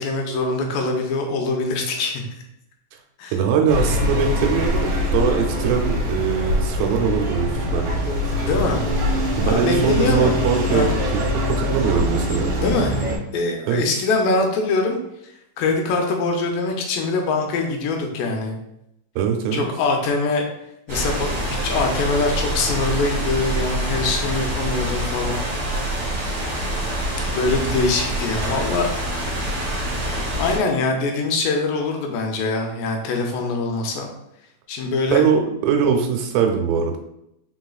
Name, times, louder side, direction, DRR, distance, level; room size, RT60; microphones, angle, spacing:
voice 1, 0.0-2.2 3.2-3.3 8.4-8.8 9.4-10.4 10.7-10.9 12.6-12.9 13.3-15.0 15.6-18.6 19.5-20.5 20.9-25.4 25.7-25.8 27.3-28.9 30.3-34.1 34.7-35.2, left 3 dB, 80° left, 2 dB, 2.2 m, -23 dB
voice 2, 3.3-8.0 9.4-12.5 13.7-13.8 19.2-19.6 35.1-37.0, right 7 dB, 85° right, 3 dB, 2.5 m, -21 dB
sound 1, 3.7-13.2, left 1 dB, 65° right, 1.5 m, -23 dB
sound 2, 20.9-30.6, right 1 dB, 40° right, 1.5 m, -25 dB
5.0 x 4.1 x 2.3 m, 0.80 s
omnidirectional pair, 4.1 m